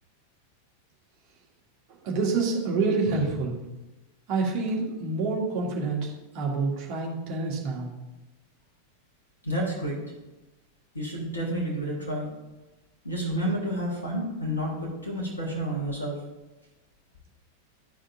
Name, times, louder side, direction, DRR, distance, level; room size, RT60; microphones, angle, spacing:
voice 1, 2.0-3.6 4.3-7.9, right 3 dB, 40° right, -3 dB, 1.9 m, -27 dB
voice 2, 9.4-10.0 10.9-12.3 13.0-16.2, equal, 80° left, -3 dB, 1.8 m, -30 dB
12.0 x 4.9 x 2.7 m, 1.1 s
figure-of-eight pair, 90°, 0 cm